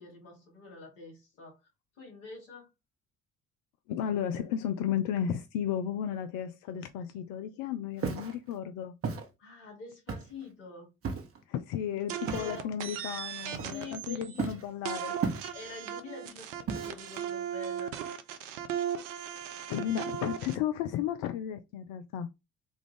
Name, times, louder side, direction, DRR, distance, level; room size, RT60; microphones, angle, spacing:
voice 1, 0.0-1.6 2.0-2.7 9.4-10.9 12.3-12.7 13.7-14.6 15.0-15.2 15.5-17.9, left 3 dB, 80° left, 1.6 m, -46 dB
voice 2, 3.9-8.9 11.5-15.4 19.7-22.3, left 9 dB, 65° left, 0.5 m, -34 dB
Walk footsteps, 8.0-8.4 9.0-9.3 10.1-10.4 11.0-11.4 12.3-12.6 13.5-14.0 14.4-14.7 15.2-15.8 16.7-17.2, right 5 dB, 35° right, 1.0 m, -34 dB
sound 1, 12.1-14.5 14.9-20.6, right 9 dB, 80° right, 0.6 m, -37 dB
3.5 x 2.3 x 3.3 m
hypercardioid pair, 50°, 37 cm